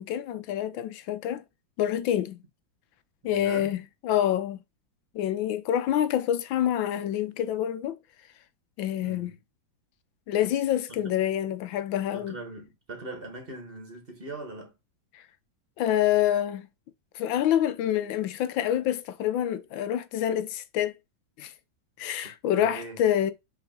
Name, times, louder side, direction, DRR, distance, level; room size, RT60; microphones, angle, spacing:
voice 1, 0.0-1.4 1.8-2.4 3.2-3.8 4.0-4.6 5.1-8.0 8.8-9.3 10.3-12.3 15.1-15.2 15.8-16.7 17.1-20.9 21.4-21.5 22.0-23.3, left 11 dB, 80° left, 1.5 m, -27 dB
voice 2, 3.2-3.7 9.0-9.4 10.9-11.0 12.1-14.7 22.2-23.0, right 2 dB, 30° right, 2.0 m, -41 dB
5.7 x 3.9 x 5.9 m
omnidirectional pair, 2.1 m